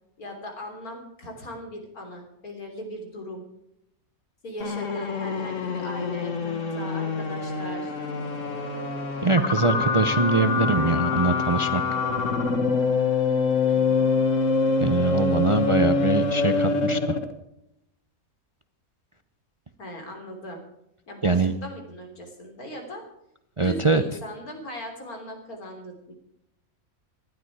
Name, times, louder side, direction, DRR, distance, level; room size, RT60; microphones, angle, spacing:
voice 1, 0.2-3.4 4.4-7.9 13.7-14.1 19.8-20.6 21.1-23.1 23.6-26.1, equal, 85° left, 3 dB, 4.0 m, -39 dB
sound 1, 4.6-17.3, left 4 dB, 60° left, 1.9 m, -25 dB
voice 2, 9.2-11.8 14.8-17.2 21.2-21.5 23.6-24.0, right 3 dB, 30° right, 10 dB, 0.6 m, -23 dB
19.0 x 12.5 x 4.8 m, 0.80 s
omnidirectional pair, 1.5 m